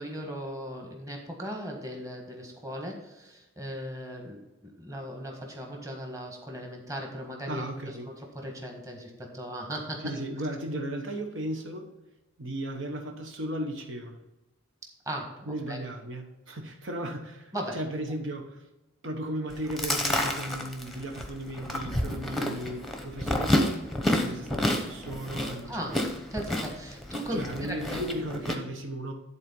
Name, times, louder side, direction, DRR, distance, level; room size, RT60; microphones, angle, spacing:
voice 1, 0.0-10.1 15.0-15.3 15.7-15.8 17.5-17.8 25.7-26.0 26.3-28.0, equal, 15° right, 1.5 m, -37 dB
voice 2, 7.5-8.1 10.0-11.9 12.4-14.2 15.5-18.6 19.0-23.8 24.1-26.0 27.3-29.1, right 1 dB, 70° right, 1.2 m, -36 dB
Chewing mastication, 19.5-28.5, left 1 dB, ahead, 0.9 m, -30 dB
11.0 x 4.1 x 5.5 m
head